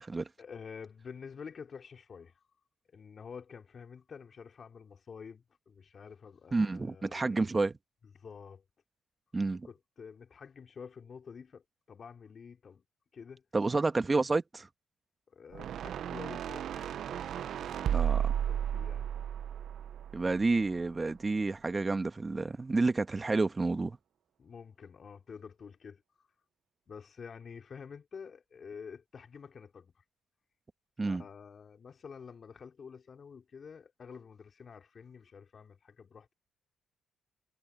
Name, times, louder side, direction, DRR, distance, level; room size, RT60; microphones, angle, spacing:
voice 1, 0.4-2.3 2.9-7.6 8.1-8.6 9.6-11.6 11.9-12.8 13.1-13.4 15.3-17.0 18.3-19.1 24.4-26.0 26.9-29.9 31.0-36.3, left 6 dB, 50° left, 3.6 m, -48 dB
voice 2, 6.5-7.8 9.3-9.7 13.5-14.7 17.9-18.3 20.1-24.0 31.0-31.2, right 3 dB, 30° right, 1.4 m, -30 dB
sound 1, 15.5-20.8, right 9 dB, 70° right, 0.7 m, -34 dB
supercardioid pair, 65°, 0 cm